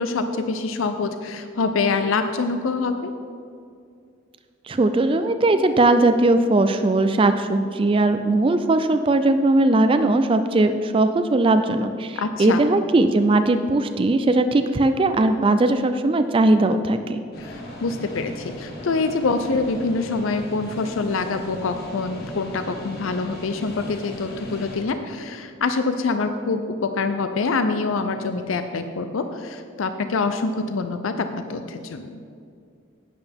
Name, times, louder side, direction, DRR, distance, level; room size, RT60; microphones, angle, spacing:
voice 1, 0.0-3.1 12.2-12.6 17.4-32.2, left 4 dB, 75° left, 8 dB, 0.5 m, -25 dB
voice 2, 4.7-17.2, right 2 dB, 25° right, 9 dB, 0.3 m, -19 dB
sound 1, 17.3-24.8, equal, 50° left, 1.7 m, -38 dB
11.0 x 9.2 x 3.5 m, 2.3 s
head